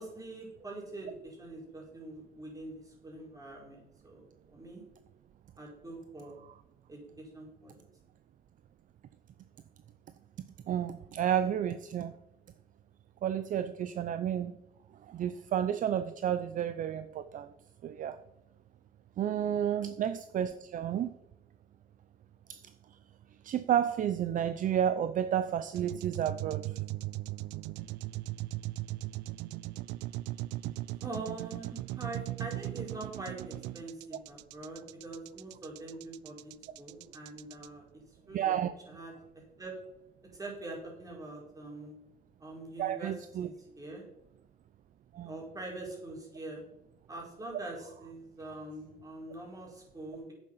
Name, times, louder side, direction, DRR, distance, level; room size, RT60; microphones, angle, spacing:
voice 1, 0.0-4.8 5.6-6.3 6.9-7.7 19.4-19.6 31.0-36.5 36.8-37.8 38.3-38.6 38.8-39.1 39.6-39.7 40.3-41.9 42.4-43.1 43.4-44.0 45.2-46.6 47.1-50.3, right 2 dB, 20° right, -2 dB, 5.1 m, -44 dB
voice 2, 10.7-12.1 13.2-14.6 15.1-17.5 17.8-18.2 19.2-21.1 22.5-22.6 23.4-26.7 38.3-38.7 42.8-43.5 45.1-45.4, right 10 dB, 50° right, 12 dB, 0.6 m, -31 dB
sound 1, 25.8-37.7, right 17 dB, 90° right, 0.4 m, -38 dB
10.5 x 8.2 x 5.6 m, 0.86 s
cardioid pair, 110°, 17 cm